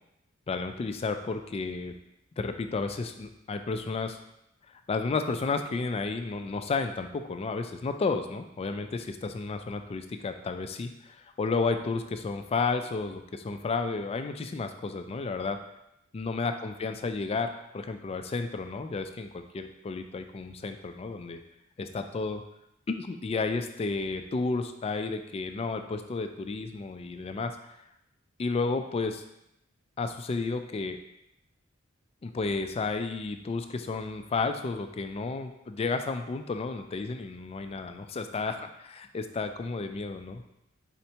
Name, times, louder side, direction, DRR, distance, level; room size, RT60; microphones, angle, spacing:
voice 1, 0.5-1.9 2.4-4.2 4.9-15.6 16.1-21.4 21.8-22.4 22.9-27.6 28.4-29.2 30.0-31.0 32.2-40.4, left 4 dB, 30° left, 7 dB, 0.3 m, -32 dB
4.3 x 4.3 x 2.8 m, 0.83 s
head